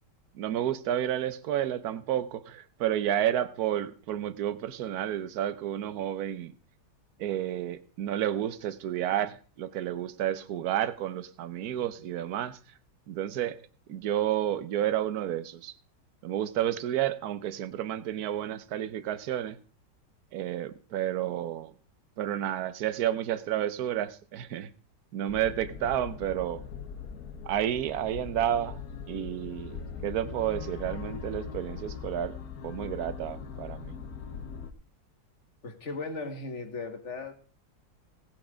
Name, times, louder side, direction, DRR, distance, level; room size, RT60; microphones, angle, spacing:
voice 1, 0.3-6.5 7.2-12.6 13.1-13.6 13.9-15.7 16.2-19.6 20.3-21.7 22.2-24.7 25.1-26.6 27.4-28.8 29.1-32.4 32.6-34.0, right 11 dB, 65° right, 14 dB, 1.2 m, -31 dB
sound 1, 25.3-34.7, left 6 dB, 60° left, 1.4 m, -41 dB
voice 2, 35.6-37.3, left 3 dB, 40° left, 6 dB, 1.9 m, -37 dB
18.0 x 6.1 x 5.0 m, 0.42 s
omnidirectional pair, 1.9 m